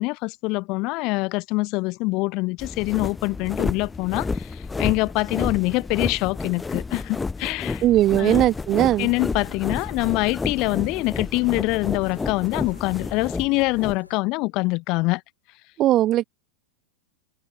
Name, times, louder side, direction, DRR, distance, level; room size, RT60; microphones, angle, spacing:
voice 1, 0.0-7.8 8.2-8.5 9.0-15.2, left 24 dB, 40° left, 0.8 m, -25 dB
sound 1, 2.6-14.0, left 4 dB, 10° left, 0.9 m, -31 dB
voice 2, 7.8-9.1 15.8-16.2, right 14 dB, 35° right, 0.5 m, -19 dB
sound 2, 9.3-14.2, left 2 dB, 85° left, 2.9 m, -51 dB
figure-of-eight pair, 90°, 0 cm